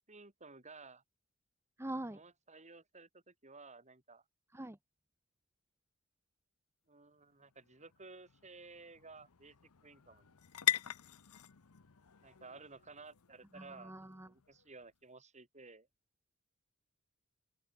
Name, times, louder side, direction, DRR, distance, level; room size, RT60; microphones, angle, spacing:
voice 1, 0.1-1.0 2.1-4.2 6.9-9.6 9.8-10.4 12.2-13.9 14.2-15.9, right 3 dB, 30° right, 6.1 m, -55 dB
voice 2, 1.8-2.2 4.5-4.8 13.5-14.3, right 1 dB, 10° right, 1.0 m, -43 dB
sound 1, 7.1-14.9, left 11 dB, 85° left, 0.9 m, -42 dB
open air
head